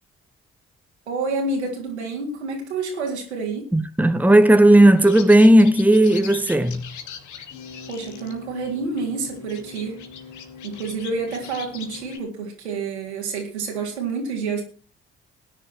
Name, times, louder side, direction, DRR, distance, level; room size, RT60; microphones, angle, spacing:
voice 1, 1.1-3.7 7.9-10.0 10.6-14.6, right 4 dB, 85° right, 3.8 m, -28 dB
voice 2, 3.7-6.9, right 1 dB, 5° right, 1.3 m, -14 dB
sound 1, 5.0-12.2, left 6 dB, 65° left, 2.5 m, -40 dB
18.0 x 10.5 x 4.6 m
figure-of-eight pair, 45°, 33 cm